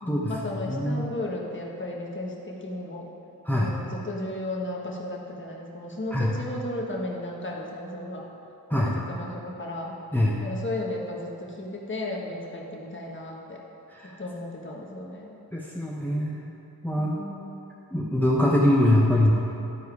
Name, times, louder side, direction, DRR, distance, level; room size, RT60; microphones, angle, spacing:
voice 1, 0.0-3.1 3.5-8.3 8.7-10.0 10.4-13.6 14.2-15.3 17.0-17.5, left 1 dB, 30° left, -2 dB, 1.5 m, -34 dB
voice 2, 0.7-1.0 3.5-3.7 6.1-6.3 8.7-8.9 10.1-10.4 14.0-14.2 15.5-16.5 16.8-17.1 17.9-19.3, left 1 dB, 5° left, -4 dB, 0.9 m, -23 dB
12.0 x 4.7 x 4.7 m, 3.0 s
cardioid pair, 60°, 39 cm